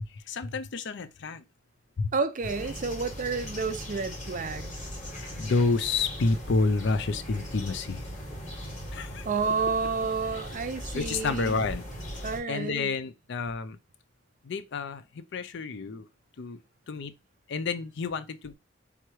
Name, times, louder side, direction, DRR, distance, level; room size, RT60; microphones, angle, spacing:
voice 1, 0.1-1.4 2.0-2.1 5.4-8.0 8.9-9.3 10.3-10.4 10.9-11.8 12.5-13.8 14.4-16.1 16.4-16.6 16.9-17.1 17.5-18.5, left 3 dB, 65° left, 0.5 m, -29 dB
voice 2, 2.1-4.7 9.3-11.6 12.2-12.9, right 4 dB, 45° right, 0.5 m, -30 dB
sound 1, 2.4-12.4, equal, 40° left, 2.3 m, -39 dB
3.6 x 3.2 x 4.5 m
head